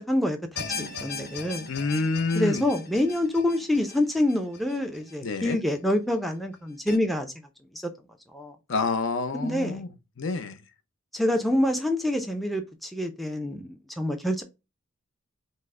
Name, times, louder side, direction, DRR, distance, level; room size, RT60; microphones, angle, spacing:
voice 1, 0.0-1.7 2.4-7.3 7.7-7.9 8.3-8.6 9.3-9.8 11.1-14.4, left 1 dB, ahead, 0.4 m, -27 dB
sound 1, 0.6-5.8 6.1-6.2 6.9-7.0, left 5 dB, 45° left, 1.0 m, -39 dB
voice 2, 1.7-2.6 5.2-5.6 8.7-9.9 10.2-10.6, left 3 dB, 60° left, 0.6 m, -27 dB
5.3 x 2.1 x 3.6 m
head